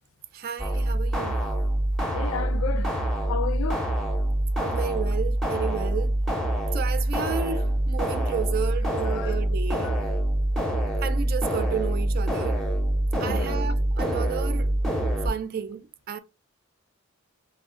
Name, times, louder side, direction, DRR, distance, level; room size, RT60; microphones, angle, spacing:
voice 1, 0.3-1.4 4.6-6.2 6.7-10.0 11.0-12.6 13.2-14.7 15.2-16.2, right 7 dB, 45° right, 0.3 m, -32 dB
sound 1, 0.6-15.3, right 1 dB, ahead, 0.7 m, -25 dB
voice 2, 2.1-2.9 3.3-3.8 8.5-8.6 9.1-10.0 13.2-13.6, left 6 dB, 65° left, 0.4 m, -33 dB
2.6 x 2.1 x 3.5 m
head